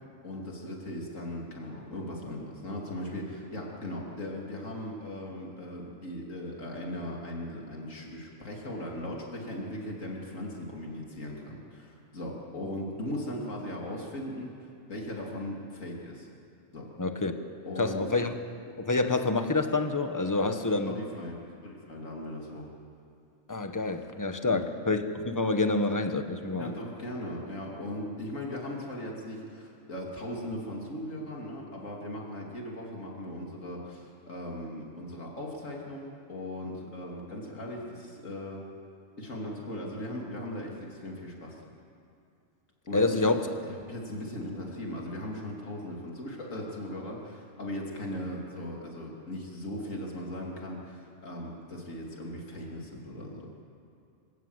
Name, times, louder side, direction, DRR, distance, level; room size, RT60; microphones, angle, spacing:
voice 1, 0.2-16.3 16.7-16.9 17.6-18.1 20.4-21.4 21.6-22.7 24.4-24.6 26.4-38.7 39.2-41.6 42.9-53.5, left 1 dB, 75° left, -2 dB, 3.5 m, -38 dB
voice 2, 17.0-17.3 17.8-18.3 18.8-20.9 23.5-26.7 42.9-43.4, left 3 dB, 15° left, 7 dB, 1.2 m, -27 dB
25.5 x 17.5 x 8.2 m, 2.5 s
omnidirectional pair, 1.3 m